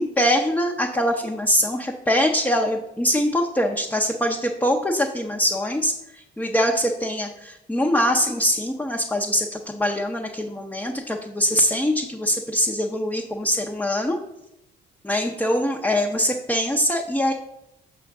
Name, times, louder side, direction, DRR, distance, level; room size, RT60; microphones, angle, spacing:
voice 1, 0.0-14.2 15.0-17.3, equal, 5° left, 0 dB, 0.6 m, -23 dB
6.2 x 3.5 x 5.9 m, 0.85 s
cardioid pair, 90°, 20 cm